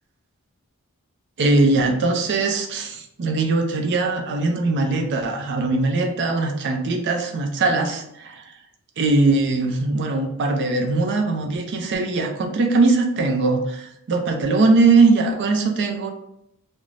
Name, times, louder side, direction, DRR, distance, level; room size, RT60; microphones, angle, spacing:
voice 1, 1.4-8.4 9.0-16.1, right 3 dB, 55° right, 4 dB, 0.4 m, -20 dB
2.5 x 2.1 x 3.1 m, 0.78 s
head